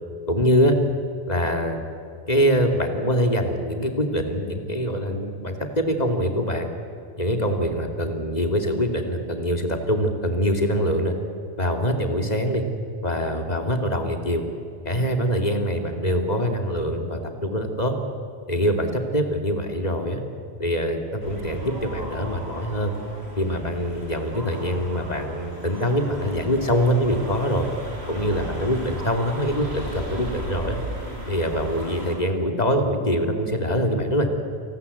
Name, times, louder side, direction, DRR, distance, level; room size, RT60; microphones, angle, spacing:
voice 1, 0.3-0.7 1.3-1.8 2.3-6.7 7.2-11.1 11.6-12.6 13.0-14.4 14.8-17.9 18.5-20.2 20.6-22.9 23.4-27.7 28.1-30.8 31.3-34.3, equal, 40° left, 4 dB, 2.8 m, -24 dB
sound 1, 21.2-32.2, right 1 dB, 70° right, 4.9 m, -36 dB
28.5 x 19.5 x 8.4 m, 2.5 s
omnidirectional pair, 1.1 m